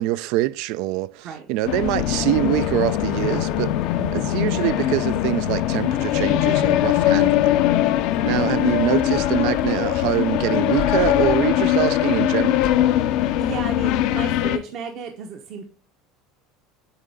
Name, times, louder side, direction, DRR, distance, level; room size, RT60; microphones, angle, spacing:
voice 1, 0.0-3.7 4.1-7.5 8.2-12.7, right 16 dB, 70° right, 0.3 m, -24 dB
sound 1, 1.7-14.6, left 12 dB, 65° left, 0.5 m, -21 dB
voice 2, 4.0-4.3 8.2-8.8 13.4-15.6, right 6 dB, 50° right, 0.9 m, -34 dB
8.3 x 3.8 x 3.4 m
supercardioid pair, 125°, 0 cm